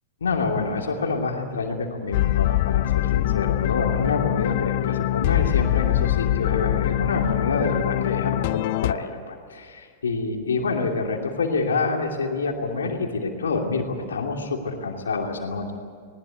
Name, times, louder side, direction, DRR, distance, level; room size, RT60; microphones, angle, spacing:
voice 1, 0.2-15.7, left 4 dB, 75° left, 3 dB, 2.8 m, -27 dB
sound 1, 2.1-8.9, left 15 dB, 50° left, 0.5 m, -23 dB
20.0 x 19.5 x 9.5 m, 2.2 s
figure-of-eight pair, 100°, 0 cm